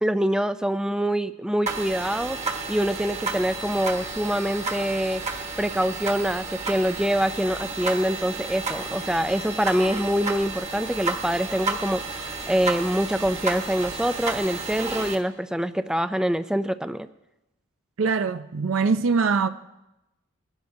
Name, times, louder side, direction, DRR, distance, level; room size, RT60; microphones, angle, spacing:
voice 1, 0.0-2.4 2.7-17.1, equal, 5° right, 0.3 m, -25 dB
sound 1, 1.7-15.2, right 3 dB, 35° right, 1.3 m, -32 dB
voice 2, 18.0-19.5, right 5 dB, 70° right, 0.5 m, -22 dB
22.0 x 11.5 x 2.7 m
head